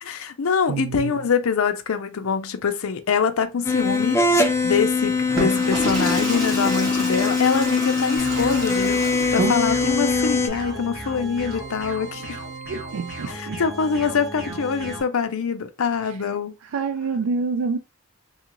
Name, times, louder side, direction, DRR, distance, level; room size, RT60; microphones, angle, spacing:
voice 1, 0.0-9.0 9.3-12.4 13.3-16.5, left 6 dB, 80° left, 0.5 m, -24 dB
voice 2, 0.7-1.2 9.4-9.6 12.7-13.6 16.0-16.2 16.6-17.8, right 4 dB, 75° right, 0.4 m, -27 dB
sound 1, 3.6-10.5, left 4 dB, 10° left, 0.3 m, -22 dB
Water / Toilet flush, 5.2-9.7, right 1 dB, 15° right, 1.4 m, -30 dB
sound 2, 8.2-15.0, right 2 dB, 45° right, 1.7 m, -35 dB
3.6 x 2.4 x 3.0 m
head